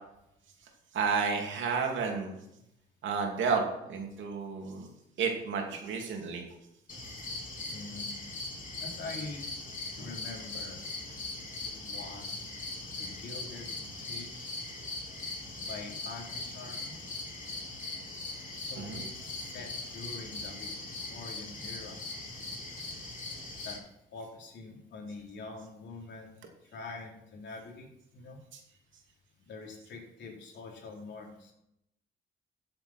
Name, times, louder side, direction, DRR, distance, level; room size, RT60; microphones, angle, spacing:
voice 1, 0.9-2.4 3.0-4.9 5.2-6.4 18.8-19.0, right 5 dB, 75° right, 2 dB, 2.7 m, -31 dB
sound 1, 6.9-23.8, left 2 dB, 40° left, 3.9 m, -40 dB
voice 2, 7.7-8.3 8.8-9.5 10.0-10.8 11.6-12.5 13.0-14.5 15.6-17.0 18.5-20.7 21.1-22.0 23.6-23.8 24.1-28.4 29.5-31.5, left 3 dB, 65° left, -1 dB, 3.7 m, -45 dB
14.5 x 7.6 x 4.4 m, 0.83 s
cardioid pair, 90°, 20 cm